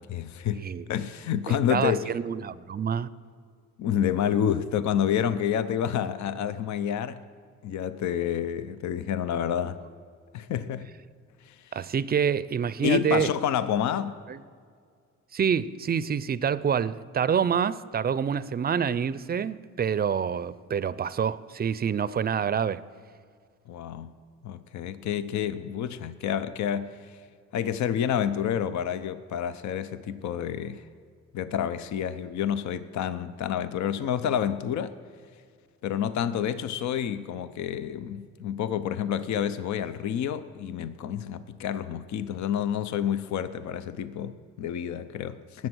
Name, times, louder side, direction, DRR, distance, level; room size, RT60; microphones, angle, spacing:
voice 1, 0.1-2.1 3.8-7.2 7.6-9.8 10.3-10.9 11.4-11.8 12.8-14.2 23.7-24.1 24.4-27.2 27.5-30.8 31.3-34.9 35.8-45.7, left 9 dB, 70° left, 0.7 m, -29 dB
voice 2, 1.5-3.1 11.7-13.3 14.3-14.4 15.3-22.8, right 7 dB, 30° right, 0.5 m, -27 dB
19.0 x 7.3 x 6.2 m
cardioid pair, 90°, 30 cm